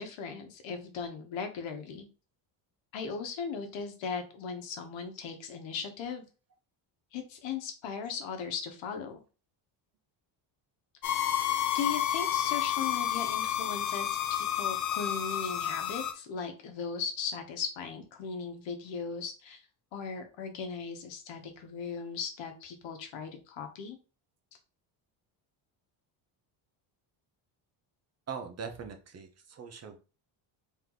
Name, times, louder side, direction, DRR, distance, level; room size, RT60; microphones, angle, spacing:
voice 1, 0.0-2.1 2.9-6.2 7.1-9.2 11.7-19.6 19.9-24.0, left 6 dB, 70° left, 6 dB, 1.1 m, -38 dB
sound 1, 11.0-16.1, left 11 dB, 40° left, 0.5 m, -30 dB
voice 2, 28.3-30.0, right 6 dB, 35° right, 7 dB, 0.6 m, -41 dB
3.3 x 3.0 x 3.9 m, 0.34 s
cardioid pair, 140°, 47 cm